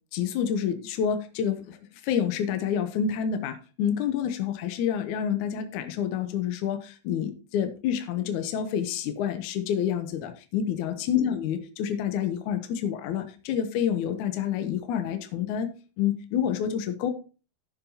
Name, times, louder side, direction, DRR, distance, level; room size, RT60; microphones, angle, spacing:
voice 1, 0.1-1.8 2.0-15.7 16.0-17.1, left 8 dB, 75° left, 8 dB, 1.8 m, -28 dB
15.5 x 7.1 x 2.8 m, 0.35 s
omnidirectional pair, 4.6 m